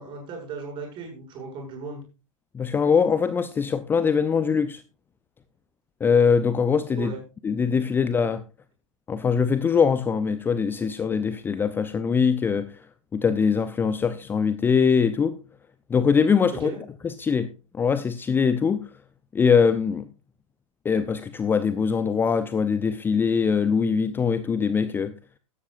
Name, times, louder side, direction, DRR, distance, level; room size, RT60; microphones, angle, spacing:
voice 1, 0.0-2.0 7.0-7.2 16.5-16.8, right 4 dB, 30° right, 7.3 m, -36 dB
voice 2, 2.5-4.8 6.0-7.1 7.4-8.4 9.1-12.7 13.1-15.4 15.9-16.7 17.0-17.5 17.7-18.8 19.3-20.0 20.8-25.1, left 6 dB, 10° left, 0.6 m, -22 dB
16.0 x 13.0 x 2.6 m
figure-of-eight pair, 100°, 17 cm